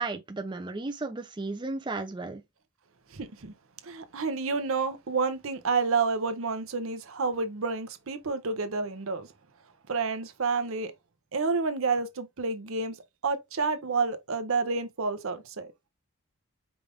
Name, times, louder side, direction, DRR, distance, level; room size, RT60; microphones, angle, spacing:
voice 1, 0.0-2.4, right 3 dB, 20° right, 0.5 m, -34 dB
voice 2, 3.1-3.5 3.8-9.3 9.9-10.9 11.3-13.0 13.2-15.7, right 4 dB, 70° right, 0.7 m, -29 dB
4.9 x 2.5 x 3.4 m
head